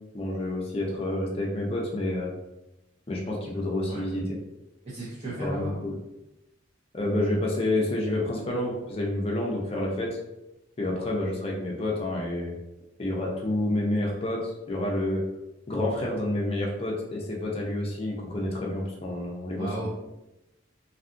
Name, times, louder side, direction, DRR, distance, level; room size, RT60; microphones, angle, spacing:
voice 1, 0.1-2.3 3.1-4.3 5.4-6.0 6.9-10.2 10.8-12.5 13.0-15.2 15.7-19.9, left 1 dB, 30° left, -2 dB, 0.4 m, -29 dB
voice 2, 4.8-5.7 19.6-19.9, right 1 dB, 30° right, -8 dB, 0.5 m, -34 dB
2.7 x 2.3 x 2.5 m, 0.94 s
head